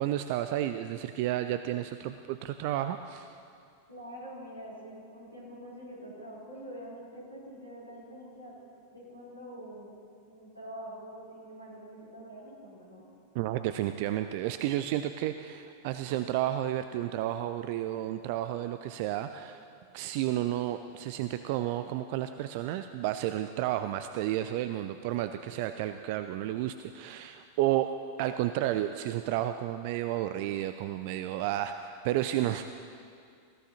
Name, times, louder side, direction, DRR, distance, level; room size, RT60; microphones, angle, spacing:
voice 1, 0.0-3.4 13.3-19.7 19.9-32.7, right 13 dB, 50° right, 10 dB, 0.4 m, -32 dB
voice 2, 3.9-8.6 8.9-9.9 10.3-13.1, equal, 90° right, -6 dB, 3.7 m, -45 dB
20.0 x 15.5 x 2.9 m, 2.3 s
figure-of-eight pair, 90°, 0 cm